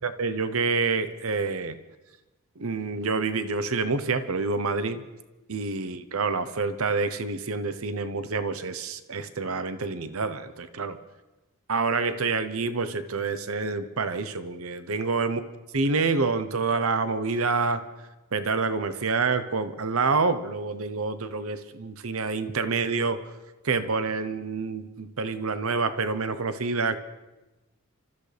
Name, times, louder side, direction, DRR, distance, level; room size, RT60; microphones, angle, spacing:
voice 1, 0.0-1.8 2.6-5.0 5.5-11.0 11.7-15.4 15.7-17.8 18.3-23.2 23.6-27.0, right 4 dB, 70° right, 11 dB, 0.9 m, -27 dB
28.5 x 13.5 x 3.4 m, 1.1 s
head